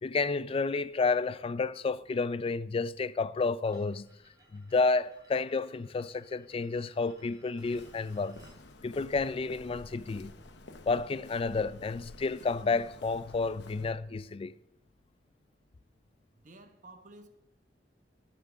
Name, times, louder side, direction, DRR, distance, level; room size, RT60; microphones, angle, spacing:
voice 1, 0.0-4.1 4.5-8.4 8.8-10.3 10.9-14.5, left 4 dB, 30° left, 0.3 m, -30 dB
sound 1, 3.6-8.6, right 1 dB, 25° right, 3.1 m, -63 dB
Walk footsteps, 7.6-13.9, left 2 dB, 75° left, 0.9 m, -51 dB
voice 2, 16.3-17.3, right 2 dB, 45° right, 1.2 m, -52 dB
11.5 x 8.2 x 6.3 m
head